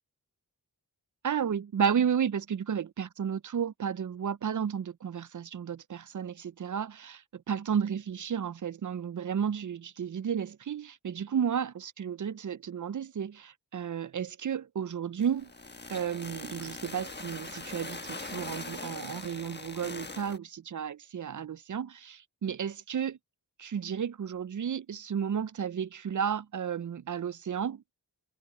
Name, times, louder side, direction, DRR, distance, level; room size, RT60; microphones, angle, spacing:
voice 1, 1.2-15.5 15.9-23.2 23.6-27.8, right 8 dB, 50° right, 0.5 m, -32 dB
sound 1, 15.2-20.4, left 2 dB, 25° left, 1.3 m, -41 dB
wide cardioid pair, 55°, 40 cm